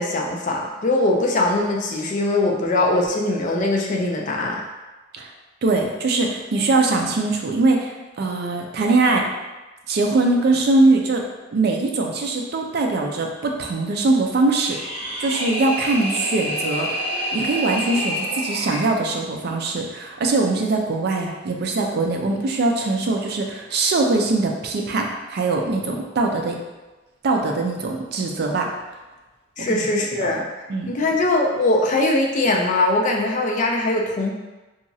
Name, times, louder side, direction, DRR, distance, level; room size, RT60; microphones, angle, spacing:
voice 1, 0.0-4.6 29.6-30.5 30.9-34.3, left 2 dB, 40° left, 0 dB, 0.3 m, -21 dB
voice 2, 5.6-9.3 9.9-11.2 11.5-14.8 15.2-17.0 17.3-26.6 27.2-28.7 29.6-29.8 30.2-30.3 30.7-30.9, right 3 dB, 55° right, 2 dB, 0.4 m, -22 dB
sound 1, 14.5-18.9, equal, 10° right, 0.9 m, -28 dB
2.9 x 2.3 x 2.6 m, 1.1 s
head